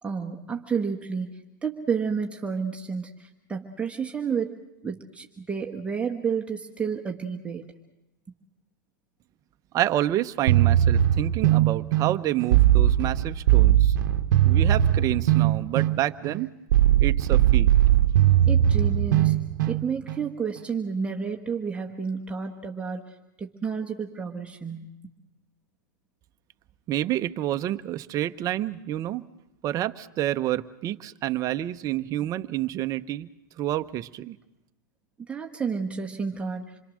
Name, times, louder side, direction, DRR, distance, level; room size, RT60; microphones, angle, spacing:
voice 1, 0.0-1.3 1.6-4.6 4.8-7.7 18.5-19.3 19.6-23.0 23.4-24.9 35.3-36.7, right 6 dB, 10° right, 1 dB, 1.4 m, -30 dB
voice 2, 9.7-14.0 14.4-16.5 17.0-17.7 26.9-29.3 29.6-33.3 33.6-34.4, right 13 dB, 30° right, 10 dB, 0.8 m, -28 dB
sound 1, 10.5-20.3, right 12 dB, 70° right, 0.9 m, -20 dB
27.0 x 22.0 x 6.4 m, 0.97 s
hypercardioid pair, 130°, 11 cm